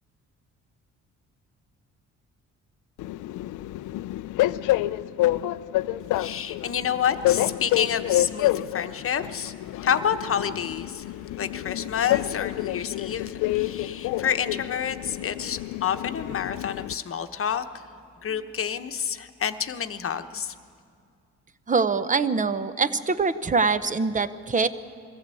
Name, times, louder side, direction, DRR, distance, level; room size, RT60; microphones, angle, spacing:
Train, 3.0-16.9, left 15 dB, 85° left, 0.5 m, -28 dB
voice 1, 6.1-9.5 9.8-11.1 11.4-17.8 18.2-20.5, left 8 dB, 45° left, 8 dB, 1.0 m, -29 dB
voice 2, 21.7-24.7, right 4 dB, 25° right, 13 dB, 0.8 m, -24 dB
22.0 x 14.5 x 8.4 m, 2.3 s
cardioid pair, 90°, 30 cm